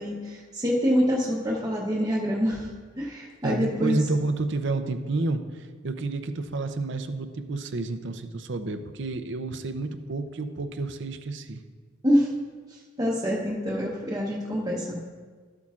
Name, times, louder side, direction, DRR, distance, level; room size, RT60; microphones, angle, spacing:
voice 1, 0.0-2.7 3.0-4.0 12.0-12.3 12.7-15.0, equal, 20° right, -6 dB, 0.9 m, -26 dB
voice 2, 3.4-11.6, right 3 dB, 60° right, 8 dB, 0.6 m, -30 dB
13.0 x 8.4 x 2.4 m, 1.5 s
head